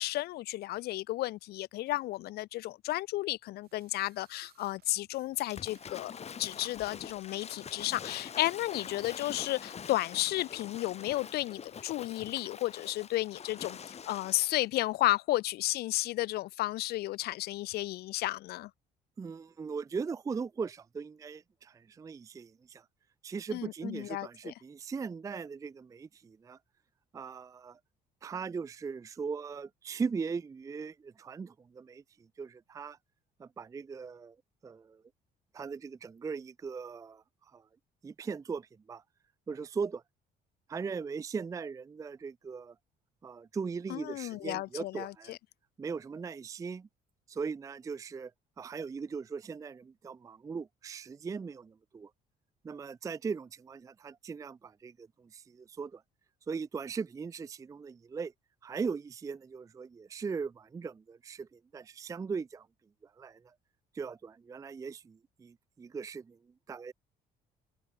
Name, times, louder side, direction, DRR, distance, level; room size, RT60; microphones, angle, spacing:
voice 1, 0.0-6.1 6.4-18.7 23.5-24.5 43.9-45.4, left 17 dB, 70° left, 0.5 m, -33 dB
sound 1, 3.6-11.3, right 13 dB, 70° right, 5.4 m, -66 dB
Waves surf / Splash splatter, 5.4-14.6, left 7 dB, 40° left, 2.5 m, -45 dB
voice 2, 19.2-22.9 23.2-26.6 27.1-27.8 28.2-32.0 32.4-33.0 33.4-34.4 34.6-35.0 35.5-37.7 38.0-39.0 39.5-40.0 40.7-42.8 43.2-45.4 45.8-46.9 47.3-48.3 48.6-52.1 52.6-56.0 56.5-58.3 58.6-62.7 63.0-63.5 63.9-66.4 66.7-66.9, right 5 dB, 20° right, 0.4 m, -39 dB
open air
cardioid pair, 110°, 17 cm